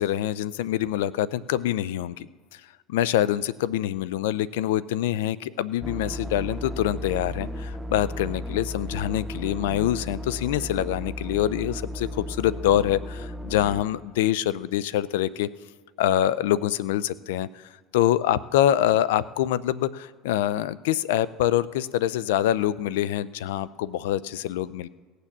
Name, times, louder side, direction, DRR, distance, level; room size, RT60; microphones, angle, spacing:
voice 1, 0.0-2.3 2.9-15.5 16.0-17.5 17.9-24.9, left 12 dB, 90° left, 19 dB, 0.4 m, -25 dB
sound 1, 5.8-13.8, left 1 dB, 5° right, 0.7 m, -35 dB
17.5 x 6.8 x 7.2 m, 1.5 s
supercardioid pair, 110°, 0 cm